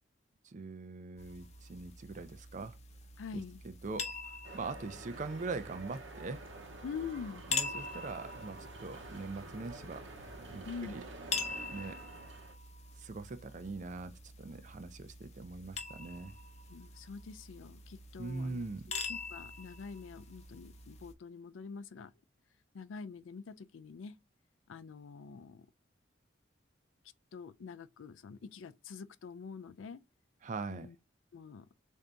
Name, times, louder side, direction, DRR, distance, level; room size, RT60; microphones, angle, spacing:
voice 1, 0.4-2.8 3.3-6.4 7.5-11.0 11.7-12.0 13.0-16.3 18.2-18.8 30.4-30.9, right 3 dB, 40° right, 0.4 m, -42 dB
sound 1, 1.2-21.1, left 4 dB, 35° left, 0.6 m, -44 dB
voice 2, 3.2-3.6 6.8-7.5 10.7-10.9 16.7-22.1 22.7-24.1 24.7-25.7 27.3-30.0 30.7-30.9 31.3-31.7, left 5 dB, 90° left, 0.4 m, -45 dB
sound 2, 4.4-12.5, right 2 dB, 80° right, 0.9 m, -49 dB
3.9 x 2.7 x 3.4 m
head